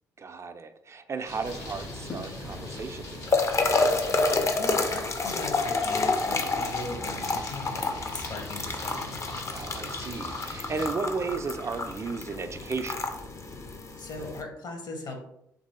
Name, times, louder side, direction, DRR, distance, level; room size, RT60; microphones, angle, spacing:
voice 1, 0.2-3.4 9.5-13.1, right 4 dB, 30° right, 9 dB, 0.4 m, -34 dB
sound 1, 1.2-10.9, left 1 dB, 80° left, 1.1 m, -42 dB
sound 2, 1.5-14.4, left 3 dB, 35° left, 0.5 m, -30 dB
voice 2, 4.4-9.2 14.0-15.2, left 2 dB, 50° left, 3 dB, 0.8 m, -39 dB
2.9 x 2.6 x 2.7 m, 0.76 s
hypercardioid pair, 50°, 9 cm